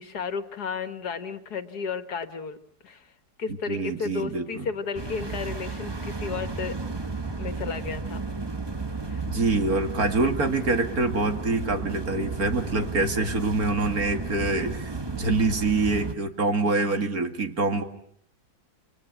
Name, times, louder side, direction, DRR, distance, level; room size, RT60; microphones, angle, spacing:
voice 1, 0.0-3.1 3.4-6.8 7.4-8.2 9.1-9.3 12.9-13.4 16.6-17.0, left 5 dB, 70° left, 10 dB, 2.1 m, -33 dB
voice 2, 3.5-4.6 9.3-17.8, right 3 dB, 60° right, 6 dB, 2.7 m, -25 dB
sound 1, 4.9-16.1, right 3 dB, 15° right, 1.1 m, -33 dB
29.5 x 25.5 x 6.1 m, 0.62 s
omnidirectional pair, 1.8 m